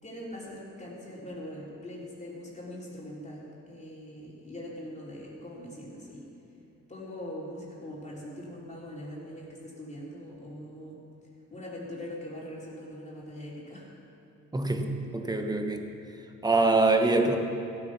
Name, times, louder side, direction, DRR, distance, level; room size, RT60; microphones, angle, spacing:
voice 1, 0.0-6.3 6.9-11.0 11.5-13.9, left 1 dB, 25° left, -5 dB, 3.2 m, -42 dB
voice 2, 14.5-15.9 16.4-17.4, right 3 dB, 15° right, 5 dB, 1.2 m, -24 dB
15.5 x 8.8 x 5.9 m, 2.8 s
cardioid pair, 90°, 30 cm